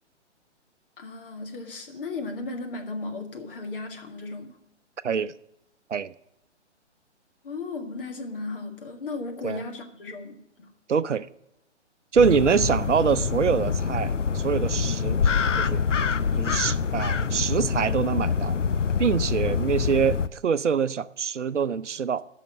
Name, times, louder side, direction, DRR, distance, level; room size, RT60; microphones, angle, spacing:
voice 1, 1.0-4.6 7.4-10.7, left 3 dB, 50° left, 1.9 m, -35 dB
voice 2, 10.9-11.3 12.1-15.2 15.6-15.8 16.4-18.5 19.0-22.2, right 6 dB, 80° right, 0.6 m, -25 dB
sound 1, 12.2-20.3, left 6 dB, 85° left, 0.6 m, -25 dB
13.5 x 5.8 x 6.3 m
figure-of-eight pair, 130°, 36 cm